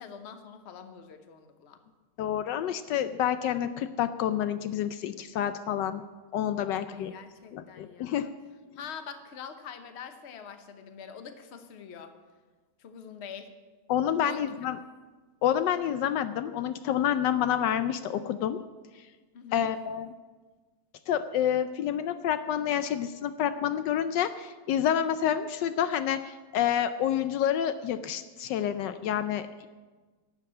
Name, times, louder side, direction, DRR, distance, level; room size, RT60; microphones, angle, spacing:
voice 1, 0.0-1.8 6.9-8.3 8.7-12.1 12.8-13.5 14.2-14.4 19.3-19.7, left 7 dB, 45° left, 8 dB, 1.1 m, -44 dB
voice 2, 2.2-6.0 6.3-7.1 7.5-8.3 13.9-14.8 15.4-18.6 19.5-20.1 21.1-29.7, left 10 dB, 75° left, 11 dB, 1.2 m, -28 dB
12.0 x 7.7 x 8.8 m, 1.3 s
omnidirectional pair, 2.0 m